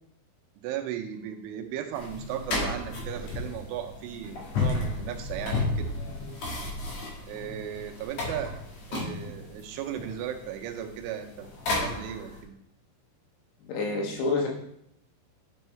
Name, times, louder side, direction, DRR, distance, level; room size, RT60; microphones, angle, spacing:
voice 1, 0.6-5.9 7.3-8.5 8.9-11.5 11.8-12.5, right 10 dB, 90° right, 5 dB, 3.2 m, -36 dB
sound 1, 1.9-12.4, left 2 dB, 65° left, 1.7 m, -33 dB
voice 2, 13.6-14.5, left 3 dB, 85° left, -1 dB, 3.9 m, -28 dB
9.7 x 5.5 x 3.2 m, 0.73 s
omnidirectional pair, 5.5 m